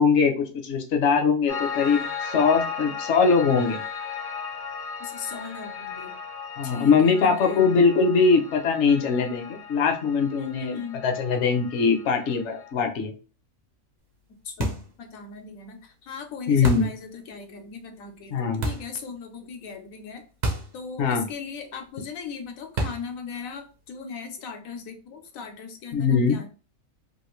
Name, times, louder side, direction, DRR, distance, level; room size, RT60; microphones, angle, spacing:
voice 1, 0.0-3.8 6.6-10.8 11.0-13.1 16.5-16.9 18.3-18.7 21.0-21.2 25.9-26.4, left 5 dB, 65° left, 4 dB, 0.9 m, -21 dB
Piano, 1.5-12.7, left 6 dB, 50° left, 0.4 m, -36 dB
voice 2, 5.0-6.2 6.6-7.6 10.4-11.0 14.4-20.2 20.7-26.5, left 5 dB, 80° left, 5 dB, 1.1 m, -38 dB
sound 1, 14.6-15.0 16.6-17.0 18.6-19.0 20.4-20.8 21.1-21.2 22.8-23.2, right 1 dB, 45° right, 0.7 m, -29 dB
3.1 x 2.5 x 3.0 m, 0.36 s
omnidirectional pair, 1.4 m